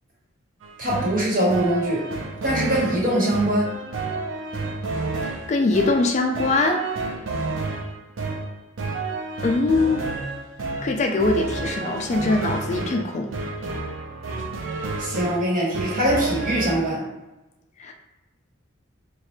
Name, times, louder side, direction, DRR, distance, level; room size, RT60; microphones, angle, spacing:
sound 1, 0.6-16.7, right 3 dB, 80° right, 0.6 m, -30 dB
voice 1, 0.8-2.1 2.4-3.7 15.0-17.0, right 1 dB, 45° right, -5 dB, 1.3 m, -22 dB
voice 2, 5.2-6.9 9.4-10.0 10.8-13.3 17.8-17.9, left 3 dB, 35° left, 3 dB, 0.3 m, -22 dB
3.1 x 2.4 x 4.4 m, 1.0 s
head